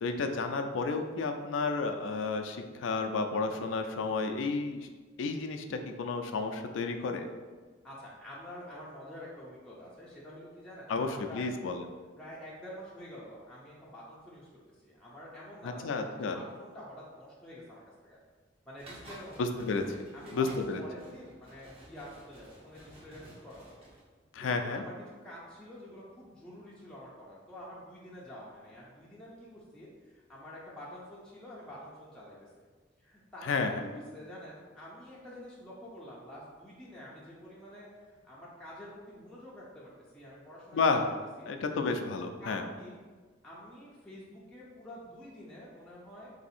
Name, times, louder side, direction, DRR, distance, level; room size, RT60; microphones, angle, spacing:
voice 1, 0.0-4.9 5.2-7.3 10.9-11.8 15.6-16.4 19.4-19.8 20.3-20.8 24.3-24.8 33.4-33.7 40.7-41.1 41.5-42.6, left 4 dB, 80° left, 6 dB, 0.4 m, -31 dB
voice 2, 7.8-11.5 12.2-18.2 18.7-19.4 20.1-20.5 20.8-23.8 24.4-25.0 25.2-32.5 33.0-37.9 38.2-41.1 41.4-41.5 42.4-43.0 43.4-46.3, equal, 5° left, -7 dB, 0.5 m, -48 dB
sound 1, 18.8-24.0, right 1 dB, 30° right, 0.9 m, -53 dB
3.4 x 2.7 x 4.1 m, 1.4 s
head